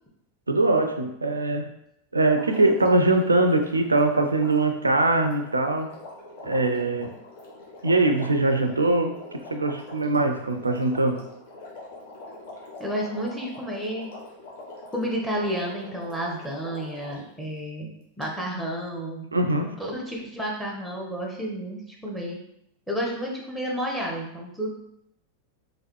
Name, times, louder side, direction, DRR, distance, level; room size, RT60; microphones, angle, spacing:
voice 1, 0.5-1.7 2.1-5.9 6.4-7.1 7.8-11.2 19.3-19.8, right 2 dB, 80° right, 6 dB, 0.4 m, -22 dB
Water, 2.3-17.3 18.2-18.3, left 2 dB, 50° left, 1.2 m, -44 dB
voice 2, 12.8-14.1 14.9-17.9 18.2-19.3 19.8-22.4 22.9-24.7, equal, ahead, -1 dB, 1.0 m, -31 dB
3.9 x 3.1 x 3.0 m, 0.78 s
figure-of-eight pair, 90°, 0 cm